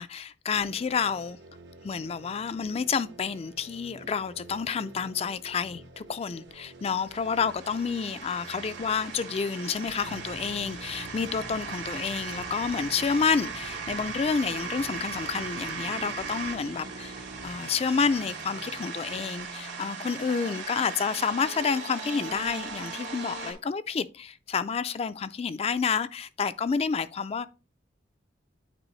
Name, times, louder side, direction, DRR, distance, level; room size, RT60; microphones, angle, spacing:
voice 1, 0.0-1.4 1.8-27.5, left 6 dB, 35° left, 0.3 m, -29 dB
sound 1, 0.5-19.2, right 2 dB, 65° right, 0.9 m, -50 dB
sound 2, 6.5-23.5, right 5 dB, 80° right, 2.1 m, -38 dB
Drill, 9.8-18.4, right 2 dB, 50° right, 0.6 m, -46 dB
9.0 x 4.4 x 3.1 m
head